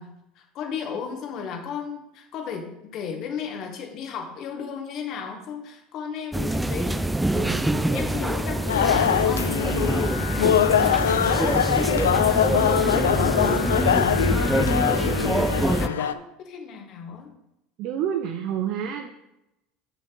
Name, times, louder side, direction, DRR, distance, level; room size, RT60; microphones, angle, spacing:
voice 1, 0.0-7.2 7.7-14.3 14.7-15.5 15.8-17.3, left 6 dB, 50° left, 3 dB, 1.7 m, -35 dB
sound 1, 6.3-15.9, right 1 dB, 5° right, 0.5 m, -25 dB
voice 2, 7.3-8.1 17.8-19.1, right 9 dB, 55° right, 4 dB, 0.8 m, -29 dB
sound 2, 8.7-16.1, left 9 dB, 80° left, 0.4 m, -23 dB
6.3 x 6.3 x 5.4 m, 0.87 s
hypercardioid pair, 75°, 0 cm